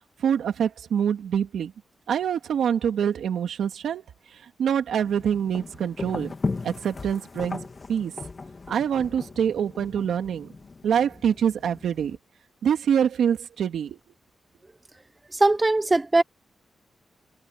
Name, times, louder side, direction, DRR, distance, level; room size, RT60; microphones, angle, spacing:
voice 1, 0.2-1.7 2.1-4.0 4.3-6.3 6.6-7.6 7.9-8.1 8.7-10.5 10.8-12.2 12.6-14.0, right 8 dB, 90° right, 2.8 m, -25 dB
sound 1, 5.0-12.2, left 3 dB, 40° left, 2.8 m, -37 dB
voice 2, 15.3-16.2, right 2 dB, 25° right, 0.7 m, -20 dB
cardioid pair, 75°, 0 cm